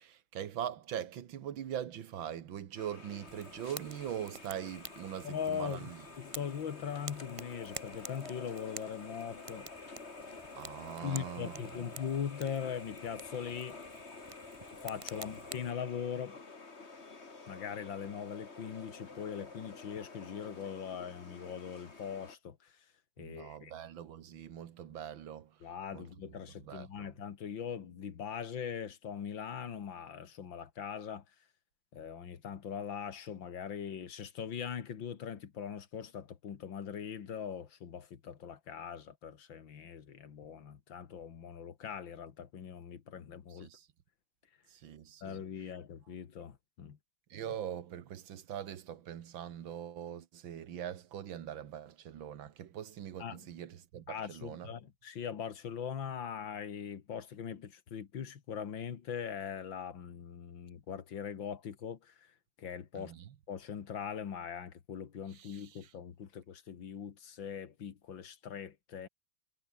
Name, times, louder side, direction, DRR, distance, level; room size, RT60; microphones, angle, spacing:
voice 1, 0.0-6.0 10.6-11.9 23.2-25.5 25.9-26.1 26.7-27.1 43.5-43.9 44.7-45.5 47.3-54.7 62.9-63.2 65.3-65.8, right 10 dB, 90° right, 2.0 m, -42 dB
sound 1, 2.7-22.3, left 3 dB, 35° left, 2.7 m, -50 dB
Fire, 3.3-15.7, right 4 dB, 25° right, 0.8 m, -50 dB
voice 2, 5.2-5.9 6.2-9.7 11.0-13.8 14.8-16.4 17.5-22.7 23.2-23.7 25.6-31.2 31.9-43.7 45.2-47.0 53.2-53.4 54.1-62.3 62.6-63.1 63.5-69.1, left 7 dB, 80° left, 2.4 m, -41 dB
omnidirectional pair, 2.1 m